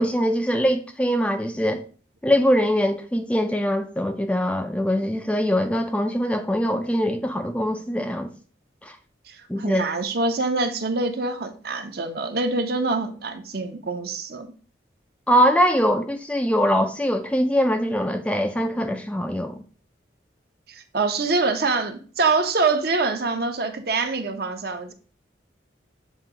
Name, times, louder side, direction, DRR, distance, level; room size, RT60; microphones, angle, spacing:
voice 1, 0.0-1.8 2.2-8.3 8.8-9.0 9.5-9.9 15.3-19.6, equal, 5° left, 0.3 m, -22 dB
voice 2, 9.3-14.5 20.7-24.9, right 3 dB, 55° right, 0.7 m, -25 dB
7.4 x 2.7 x 4.9 m
head